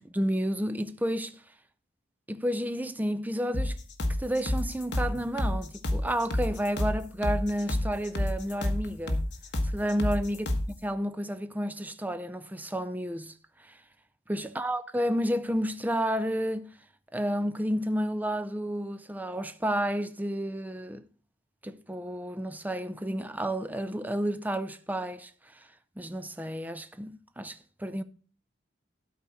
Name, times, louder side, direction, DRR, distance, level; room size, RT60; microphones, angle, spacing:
voice 1, 0.0-1.4 2.3-3.8 4.2-9.2 9.6-10.5 10.8-13.3 13.6-13.8 14.3-16.7 17.1-21.0 21.6-25.7 26.0-28.0, equal, 10° right, 0.5 m, -31 dB
sound 1, 3.5-10.8, left 1 dB, 60° left, 1.4 m, -29 dB
12.0 x 4.2 x 6.1 m
head